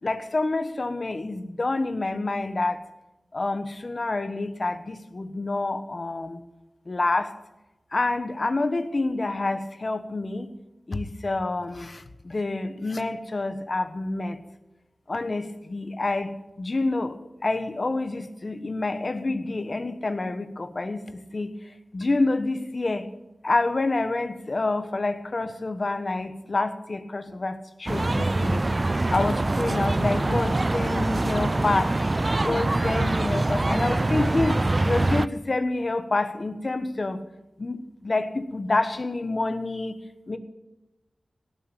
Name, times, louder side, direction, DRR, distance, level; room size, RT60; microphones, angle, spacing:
voice 1, 0.0-2.8 3.3-6.4 6.9-7.3 7.9-10.5 10.9-14.4 15.1-17.2 17.4-21.5 21.9-23.1 23.4-28.7 29.1-31.9 32.4-37.2 37.6-40.0 40.3-40.4, left 2 dB, 50° left, 10 dB, 1.3 m, -28 dB
sound 1, 27.9-35.3, right 2 dB, 35° right, 0.4 m, -24 dB
17.5 x 7.3 x 9.1 m, 1.0 s
wide cardioid pair, 70°, 0 cm